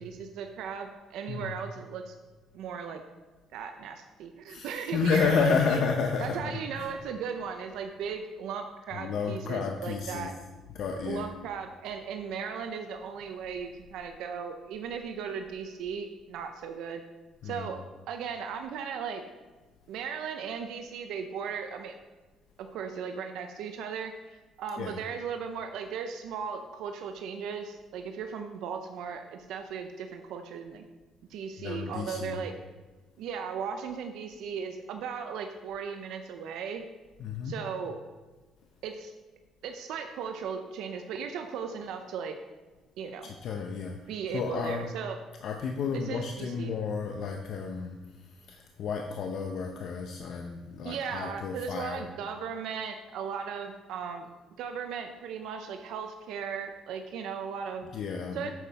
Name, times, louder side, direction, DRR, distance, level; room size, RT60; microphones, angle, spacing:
voice 1, 0.0-2.1 2.5-3.0 3.5-5.4 5.7-5.8 6.2-10.3 11.0-17.0 17.4-19.2 19.9-21.9 22.6-30.9 31.3-32.5 33.2-36.8 37.4-38.0 38.8-39.1 39.6-42.4 43.0-43.3 44.1-45.2 45.9-46.8 50.8-54.3 54.6-57.9 58.3-58.5, right 6 dB, 75° right, 6 dB, 0.7 m, -37 dB
voice 2, 4.5-6.9 8.9-10.3 10.7-11.3 17.4-17.7 24.8-25.0 31.6-32.4 37.2-37.5 43.2-44.0 44.3-44.9 45.4-52.1 57.9-58.5, left 5 dB, 60° left, 3 dB, 0.7 m, -31 dB
9.1 x 7.5 x 4.2 m, 1.3 s
cardioid pair, 135°, 0 cm